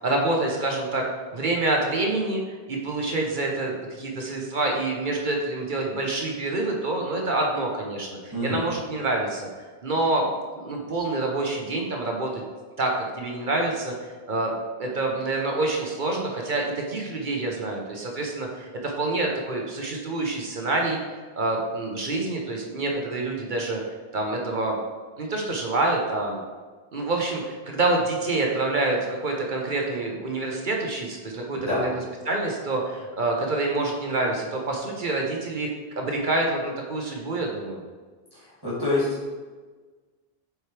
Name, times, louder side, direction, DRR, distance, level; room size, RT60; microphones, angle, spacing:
voice 1, 0.0-9.5 9.8-12.4 12.8-13.9 14.3-14.5 14.8-21.0 21.3-23.8 24.1-24.8 25.2-26.4 26.9-31.9 32.2-35.7 36.0-37.8, right 2 dB, 50° right, 0 dB, 1.0 m, -27 dB
voice 2, 8.3-8.7 31.5-31.8 38.3-39.1, left 2 dB, 20° right, -11 dB, 1.8 m, -27 dB
7.8 x 4.6 x 3.3 m, 1.4 s
omnidirectional pair, 1.1 m